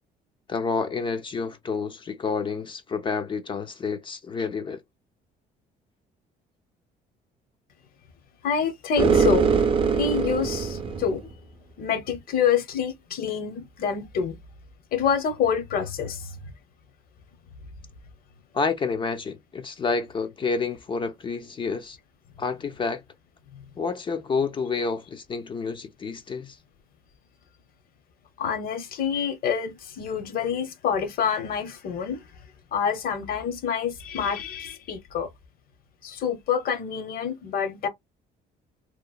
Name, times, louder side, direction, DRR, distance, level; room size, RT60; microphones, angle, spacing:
voice 1, 0.5-4.8 18.5-22.0 22.4-23.0 23.8-26.6, left 4 dB, 30° left, 0.4 m, -29 dB
voice 2, 8.4-9.5 9.9-11.2 11.8-14.4 14.9-16.5 23.5-23.7 28.4-32.2 32.7-35.3 36.0-37.9, left 7 dB, 60° left, 0.8 m, -27 dB
sound 1, 9.0-11.3, right 6 dB, 30° right, 0.6 m, -22 dB
2.9 x 2.1 x 2.4 m
cardioid pair, 110°, 17 cm